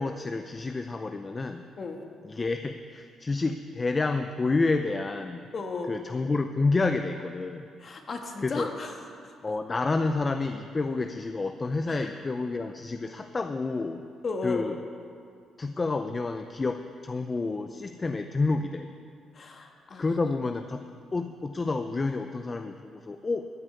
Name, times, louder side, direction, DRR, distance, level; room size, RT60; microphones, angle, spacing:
voice 1, 0.0-1.6 2.2-5.5 5.9-7.7 8.4-8.7 9.4-14.0 14.4-14.8 15.6-19.0 20.0-23.5, left 3 dB, 30° left, 8 dB, 0.5 m, -29 dB
voice 2, 5.5-5.9 7.8-8.9 9.2-9.4 11.9-12.1 14.2-14.7 19.3-20.2 20.8-20.9, left 4 dB, 45° left, 4 dB, 1.5 m, -35 dB
13.5 x 5.6 x 9.5 m, 2.3 s
cardioid pair, 90°, 0 cm